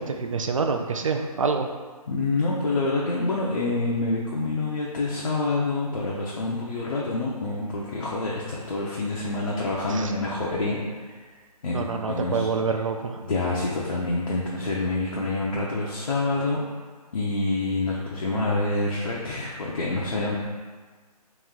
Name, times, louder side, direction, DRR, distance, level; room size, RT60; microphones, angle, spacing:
voice 1, 0.0-1.7 9.9-10.1 11.7-13.2, right 5 dB, 55° right, 5 dB, 0.4 m, -27 dB
voice 2, 2.1-10.8 11.1-11.2 11.6-12.5 13.2-16.6 17.1-20.4, left 2 dB, 60° left, -4 dB, 0.6 m, -27 dB
3.1 x 3.1 x 3.6 m, 1.4 s
figure-of-eight pair, 155°, 20 cm